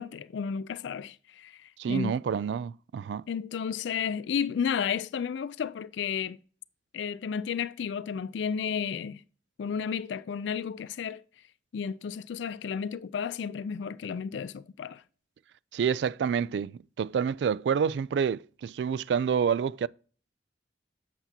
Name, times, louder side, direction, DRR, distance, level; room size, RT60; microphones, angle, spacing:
voice 1, 0.0-2.1 3.3-6.4 6.9-9.2 9.6-11.2 11.7-15.0, left 7 dB, 90° left, 0.4 m, -32 dB
voice 2, 1.8-3.2 15.7-19.9, right 7 dB, 70° right, 0.3 m, -28 dB
8.0 x 7.1 x 2.8 m
head